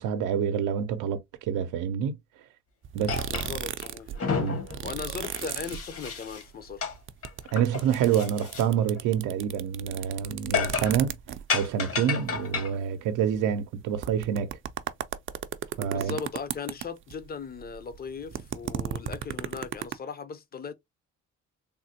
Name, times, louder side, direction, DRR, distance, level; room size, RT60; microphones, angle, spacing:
voice 1, 0.0-2.2 2.9-3.2 4.4-4.6 7.5-11.2 11.5-14.5 15.8-16.1, right 8 dB, 85° right, 0.6 m, -27 dB
sound 1, 2.8-4.2 4.4-6.3 6.6-11.6 12.2-12.3 12.5-12.6 13.3-13.4 13.8-17.2 17.5-19.9, right 10 dB, 45° right, 0.4 m, -35 dB
sound 2, 3.1-3.9 4.1-6.4 6.8-6.9 7.2-8.7 9.0-9.1 10.5-11.0 11.5-12.8, left 6 dB, 50° left, 1.0 m, -32 dB
voice 2, 3.3-4.2 4.8-6.8 15.9-20.7, left 5 dB, 30° left, 0.5 m, -38 dB
3.5 x 2.0 x 2.8 m
cardioid pair, 90°, 30 cm